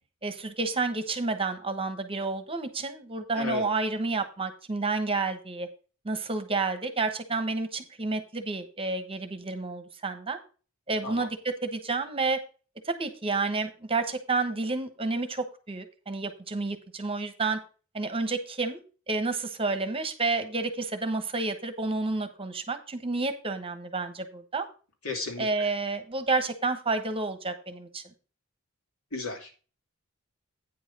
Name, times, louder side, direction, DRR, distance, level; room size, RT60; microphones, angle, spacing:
voice 1, 0.2-5.7 6.0-10.4 10.9-12.4 12.8-17.6 17.9-24.7 25.4-28.0, right 3 dB, 25° right, 9 dB, 1.0 m, -30 dB
voice 2, 25.0-25.5 29.1-29.5, left 3 dB, 70° left, 2 dB, 2.8 m, -33 dB
9.3 x 5.6 x 5.3 m, 0.35 s
head